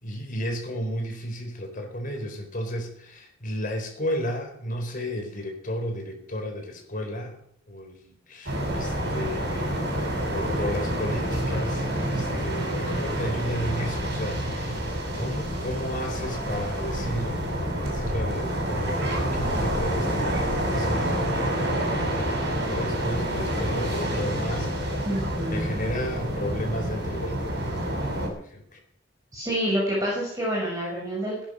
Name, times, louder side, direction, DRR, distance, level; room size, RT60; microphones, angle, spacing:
voice 1, 0.0-7.4 7.7-14.9 15.1-25.1 25.5-28.8, equal, 45° left, 4 dB, 4.4 m, -33 dB
sound 1, 8.5-28.3, right 1 dB, 60° right, 6.2 m, -28 dB
voice 2, 25.0-25.7 29.3-31.4, equal, 20° right, -5 dB, 6.1 m, -27 dB
18.0 x 10.5 x 6.3 m, 0.66 s
head